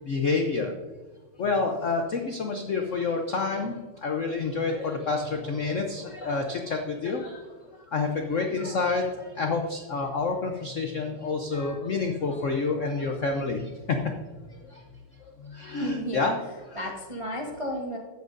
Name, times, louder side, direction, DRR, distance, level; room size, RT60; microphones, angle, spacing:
voice 1, 0.0-0.7 1.4-7.4 7.9-14.0 14.4-14.8 15.2-17.0, left 4 dB, 75° left, 3 dB, 0.7 m, -29 dB
voice 2, 15.8-16.3 16.7-18.0, equal, 35° right, 0 dB, 0.4 m, -33 dB
14.5 x 7.9 x 2.6 m, 1.3 s
omnidirectional pair, 2.4 m